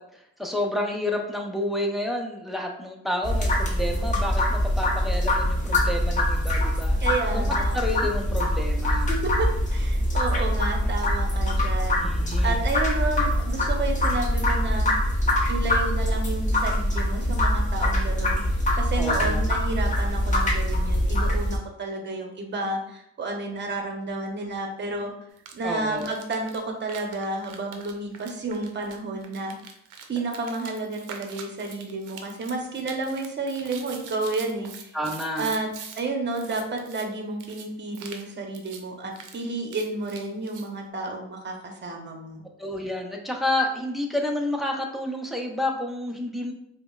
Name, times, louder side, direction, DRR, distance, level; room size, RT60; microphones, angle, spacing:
voice 1, 0.4-7.0 7.3-7.5 7.7-9.1 12.0-12.6 19.0-19.4 25.6-26.1 34.9-35.5 42.6-46.5, left 1 dB, ahead, 1 dB, 0.6 m, -29 dB
sound 1, 3.2-21.6, left 1 dB, 25° left, 0.9 m, -24 dB
voice 2, 7.0-7.8 9.1-12.0 12.4-14.9 15.4-18.4 18.8-25.1 25.5-29.5 30.1-34.9 35.4-35.7 36.0-42.4, right 3 dB, 35° right, 2 dB, 0.8 m, -31 dB
sound 2, 25.4-25.5 25.9-36.0 36.3-37.0 37.4-37.6 37.9-38.3 38.5-38.8 39.1-40.7, right 6 dB, 90° right, 0.5 m, -43 dB
5.0 x 2.1 x 2.3 m, 0.75 s
cardioid pair, 90°, 30 cm